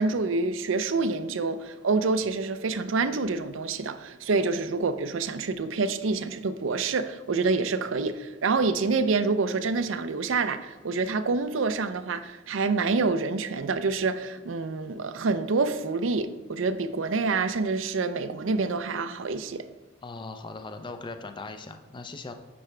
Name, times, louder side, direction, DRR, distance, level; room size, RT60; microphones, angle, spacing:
voice 1, 0.0-19.6, right 4 dB, 75° right, 11 dB, 0.5 m, -27 dB
voice 2, 20.0-22.3, left 3 dB, 25° left, 7 dB, 0.5 m, -39 dB
8.5 x 5.7 x 3.3 m, 1.3 s
head